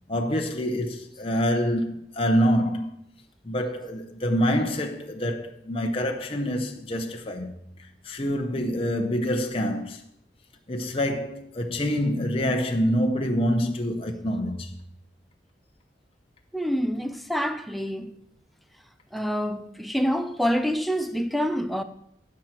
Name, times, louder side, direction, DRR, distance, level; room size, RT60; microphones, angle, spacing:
voice 1, 0.1-2.9 3.4-10.0 10.7-14.8, equal, 30° left, 0.8 m, -26 dB
voice 2, 16.5-18.2 19.1-21.8, equal, ahead, 0.6 m, -27 dB
16.0 x 6.1 x 4.5 m
head